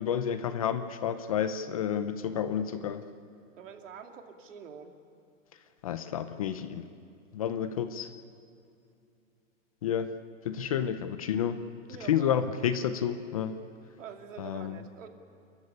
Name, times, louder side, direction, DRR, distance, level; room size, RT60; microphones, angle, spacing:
voice 1, 0.0-3.0 5.8-6.8 7.3-8.1 9.8-10.1 10.4-11.6 12.1-13.6 14.4-14.7, left 9 dB, 30° left, 11 dB, 0.6 m, -30 dB
voice 2, 3.6-5.0 11.9-12.4 14.0-15.1, right 7 dB, 70° right, 4 dB, 2.8 m, -46 dB
29.0 x 15.0 x 9.8 m, 2.6 s
hypercardioid pair, 170°, 39 cm